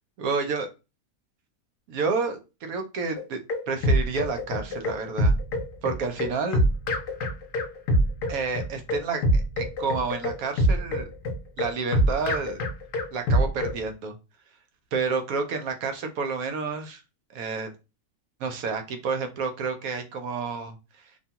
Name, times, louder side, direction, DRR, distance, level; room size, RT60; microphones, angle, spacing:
voice 1, 0.2-0.7 1.9-3.4 3.7-5.4 5.8-6.6 8.3-11.1 11.6-12.6 13.1-14.2 14.9-17.0 17.3-17.7 18.4-20.8, right 4 dB, 70° right, 6 dB, 1.0 m, -29 dB
sound 1, 3.2-13.8, equal, 70° left, 0.9 m, -24 dB
2.6 x 2.2 x 2.8 m, 0.28 s
omnidirectional pair, 1.6 m